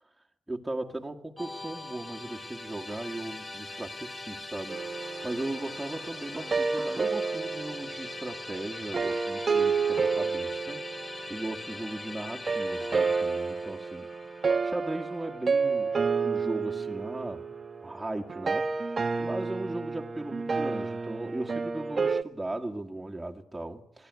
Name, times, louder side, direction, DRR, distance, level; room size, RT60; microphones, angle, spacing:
voice 1, 0.5-14.1 14.6-17.5 17.8-24.1, right 2 dB, 5° right, 1.9 m, -37 dB
Musical instrument, 1.4-16.5, left 2 dB, 20° left, 2.6 m, -42 dB
sound 1, 4.7-11.9 12.5-22.2, right 4 dB, 35° right, 1.0 m, -30 dB
24.5 x 17.5 x 9.5 m
cardioid pair, 90°, 0 cm